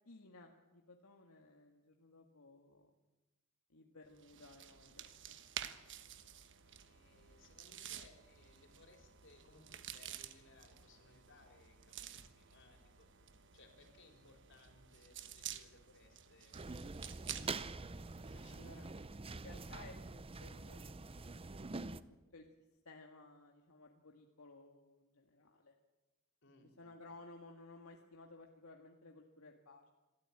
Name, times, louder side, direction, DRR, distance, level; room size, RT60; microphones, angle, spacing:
voice 1, 0.1-2.9 3.7-5.4 18.5-18.8 19.2-21.4 22.3-22.5 22.9-25.7 26.8-29.9, left 3 dB, 80° left, 2 dB, 1.9 m, -58 dB
sound 1, 4.1-18.8, right 10 dB, 60° right, 1.3 m, -51 dB
voice 2, 6.6-16.6 17.0-17.8 18.2-19.0 19.7-19.8 26.4-27.1, left 2 dB, 60° left, 4 dB, 4.4 m, -65 dB
sound 2, 16.5-22.0, right 3 dB, 25° right, 0.6 m, -45 dB
27.0 x 13.5 x 8.9 m, 1.1 s
head